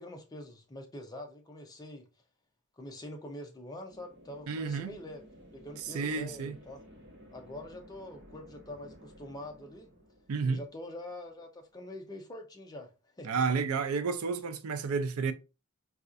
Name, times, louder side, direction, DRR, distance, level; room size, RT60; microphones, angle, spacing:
voice 1, 0.0-2.1 2.8-5.2 5.5-6.8 7.3-9.9 10.4-12.9 13.2-13.3, left 1 dB, 20° left, 0.6 m, -45 dB
sound 1, 3.9-11.4, equal, 55° right, 1.0 m, -55 dB
voice 2, 4.5-4.9 5.8-6.5 10.3-10.6 13.2-15.3, right 5 dB, 75° right, 0.5 m, -31 dB
4.1 x 2.4 x 2.5 m
head